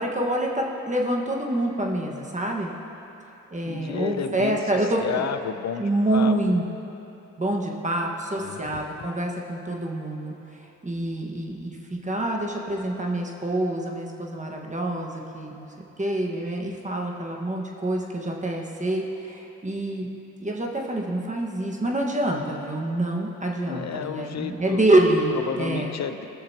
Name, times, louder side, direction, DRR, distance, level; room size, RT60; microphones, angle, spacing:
voice 1, 0.0-2.7 3.5-5.2 5.8-6.6 7.4-10.3 10.8-15.7 16.0-20.1 20.4-26.0, right 1 dB, 20° right, -1 dB, 1.5 m, -26 dB
voice 2, 3.6-4.6 5.0-6.3 8.4-8.8 23.6-24.8 25.5-26.3, left 7 dB, 55° left, 9 dB, 0.7 m, -31 dB
20.0 x 6.7 x 2.9 m, 3.0 s
supercardioid pair, 60°, 33 cm